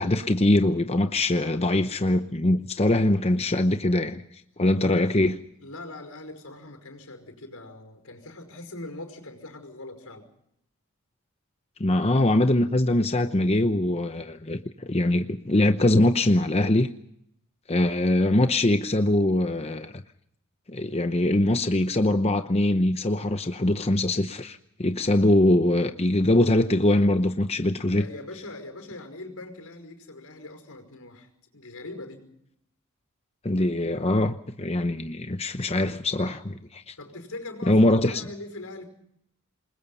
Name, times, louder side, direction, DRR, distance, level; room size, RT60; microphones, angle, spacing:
voice 1, 0.0-4.2 4.6-5.4 11.8-16.9 17.7-20.0 20.7-28.0 33.4-36.9 37.7-38.2, left 1 dB, 30° left, 0.8 m, -22 dB
voice 2, 4.8-5.1 5.6-10.3 27.9-32.3 37.0-38.9, left 2 dB, 85° left, 5.4 m, -41 dB
27.5 x 21.0 x 5.6 m
head